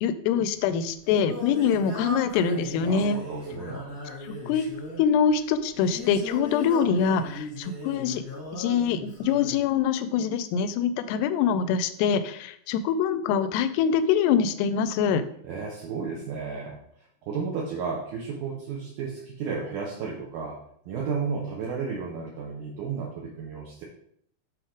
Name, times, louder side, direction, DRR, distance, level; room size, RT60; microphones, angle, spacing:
voice 1, 0.0-3.2 4.5-4.6 5.0-8.2 8.5-15.2, left 7 dB, 85° left, 11 dB, 2.5 m, -24 dB
Singing, 0.6-9.6, left 2 dB, 40° left, 1.0 m, -38 dB
voice 2, 2.8-3.9 15.4-16.8 17.2-23.8, right 5 dB, 80° right, -3 dB, 1.8 m, -33 dB
7.9 x 3.0 x 5.0 m, 0.68 s
omnidirectional pair, 4.9 m